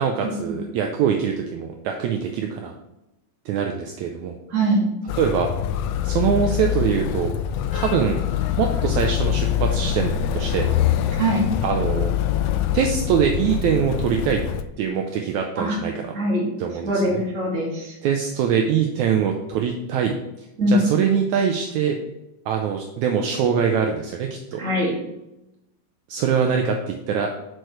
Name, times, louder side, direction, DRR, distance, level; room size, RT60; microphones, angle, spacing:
voice 1, 0.0-2.7 3.5-4.4 5.2-5.5 6.0-7.3 7.7-8.2 8.6-10.7 11.6-12.1 12.7-14.4 14.8-16.1 16.6-17.2 18.0-20.1 20.7-22.0 22.5-24.6 26.1-27.3, right 7 dB, 80° right, 3 dB, 1.7 m, -23 dB
voice 2, 4.5-4.8 11.2-11.4 15.6-15.8 16.1-16.5 16.8-17.9 20.6-20.8 24.6-24.9, equal, 25° right, -4 dB, 1.9 m, -22 dB
Motor vehicle (road), 5.1-14.6, left 10 dB, 80° left, 1.9 m, -24 dB
8.9 x 6.5 x 3.2 m, 0.91 s
omnidirectional pair, 3.9 m